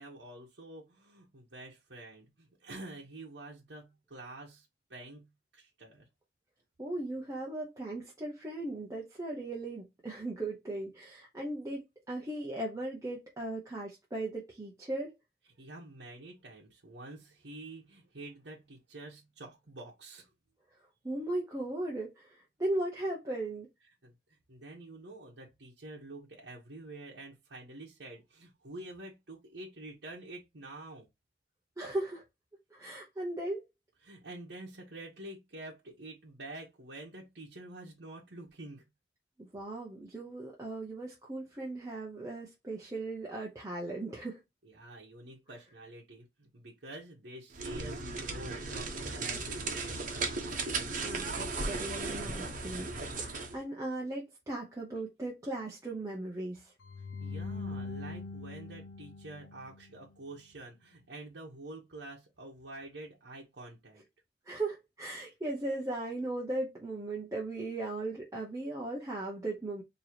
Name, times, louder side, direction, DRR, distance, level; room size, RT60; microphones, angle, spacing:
voice 1, 0.0-5.3 5.5-6.0 15.6-20.3 24.0-24.1 24.5-31.1 34.0-38.9 44.6-50.4 57.2-64.0, right 2 dB, 70° right, 1.2 m, -48 dB
voice 2, 6.8-11.8 12.1-15.1 21.0-23.7 31.8-32.2 32.7-33.6 39.4-44.4 51.0-56.7 64.4-69.8, right 2 dB, 20° right, 0.9 m, -37 dB
sound 1, 47.5-53.6, right 3 dB, 45° right, 1.1 m, -36 dB
sound 2, 56.8-60.0, left 3 dB, 75° left, 0.9 m, -42 dB
4.5 x 3.1 x 2.8 m
head